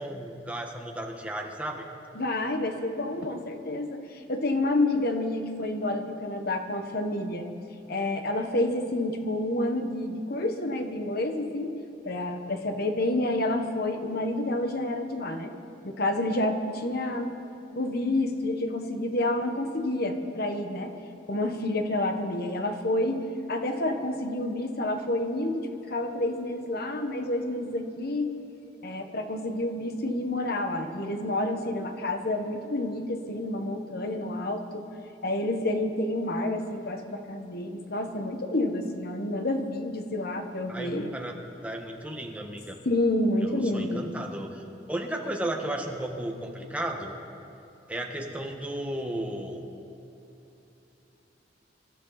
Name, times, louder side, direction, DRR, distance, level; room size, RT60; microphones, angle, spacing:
voice 1, 0.0-1.9 40.7-41.4 41.6-42.8 43.4-44.6 44.9-47.1 47.9-49.6, right 1 dB, 10° right, 1 dB, 1.5 m, -34 dB
voice 2, 2.1-7.5 7.9-11.7 12.0-15.5 15.8-17.3 17.8-21.0 21.3-23.2 23.5-28.3 28.8-34.8 35.2-41.1 42.8-44.0, left 1 dB, 55° left, 6 dB, 1.4 m, -29 dB
26.0 x 12.5 x 4.1 m, 2.9 s
head